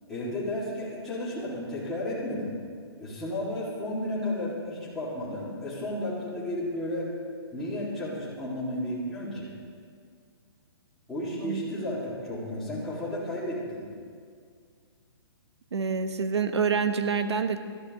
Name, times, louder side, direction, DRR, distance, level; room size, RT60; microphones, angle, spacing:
voice 1, 0.1-2.5 3.0-7.1 7.5-9.5 11.1-13.8, left 1 dB, 5° left, -11 dB, 3.9 m, -33 dB
voice 2, 15.7-17.6, right 5 dB, 90° right, 9 dB, 1.2 m, -27 dB
18.5 x 13.5 x 3.8 m, 2.1 s
hypercardioid pair, 155°, 14 cm